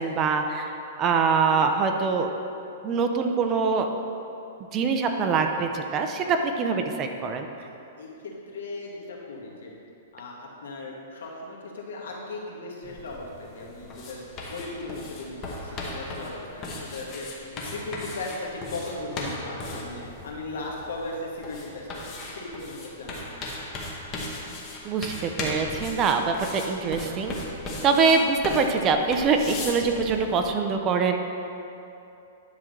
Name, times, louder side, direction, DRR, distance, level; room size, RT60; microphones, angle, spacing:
voice 1, 0.0-2.3 2.8-3.9 4.7-7.5 24.8-27.3 27.8-31.1, right 5 dB, 20° right, 5 dB, 0.5 m, -24 dB
voice 2, 8.5-9.7 10.1-14.2 14.5-17.3 17.5-23.3 27.6-27.7, left 2 dB, 85° left, -2 dB, 1.8 m, -37 dB
sound 1, 12.8-30.5, left 2 dB, 25° left, 1.0 m, -37 dB
10.5 x 3.6 x 6.4 m, 2.8 s
hypercardioid pair, 165°, 0 cm